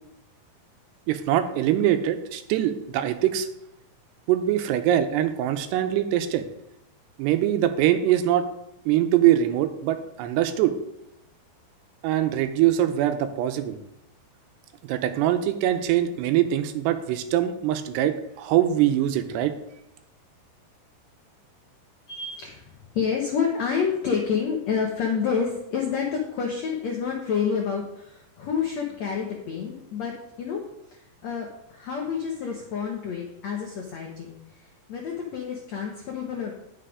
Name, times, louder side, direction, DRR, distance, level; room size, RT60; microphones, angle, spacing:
voice 1, 1.1-3.5 4.3-6.4 7.2-8.5 8.9-10.7 12.0-13.8 14.8-19.5, right 11 dB, 85° right, 9 dB, 2.8 m, -23 dB
voice 2, 22.1-30.6 30.9-34.6 34.9-36.5, left 6 dB, 80° left, 0 dB, 1.6 m, -29 dB
10.0 x 6.6 x 4.9 m, 0.83 s
omnidirectional pair, 4.8 m